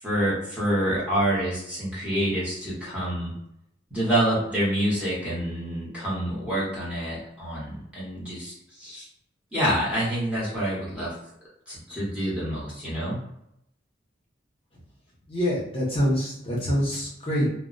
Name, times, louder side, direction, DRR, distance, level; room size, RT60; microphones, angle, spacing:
voice 1, 0.0-3.3 3.9-9.1 9.5-11.1 11.7-13.2, right 1 dB, 5° right, -8 dB, 0.9 m, -27 dB
voice 2, 15.3-17.5, equal, 30° left, -6 dB, 0.7 m, -25 dB
2.2 x 2.1 x 3.8 m, 0.77 s
head